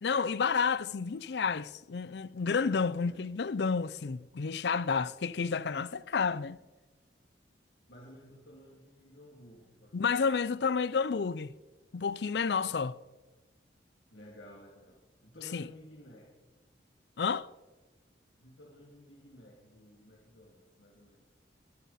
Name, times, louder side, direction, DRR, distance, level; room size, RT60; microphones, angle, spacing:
voice 1, 0.0-6.6 9.9-11.5 11.9-13.0 15.5-15.7 17.2-17.5, left 5 dB, 65° left, 0.5 m, -30 dB
voice 2, 2.9-3.2 7.9-10.3 12.6-12.7 14.1-16.3 18.4-21.3, left 1 dB, 85° left, 2.7 m, -54 dB
21.0 x 12.0 x 4.2 m
head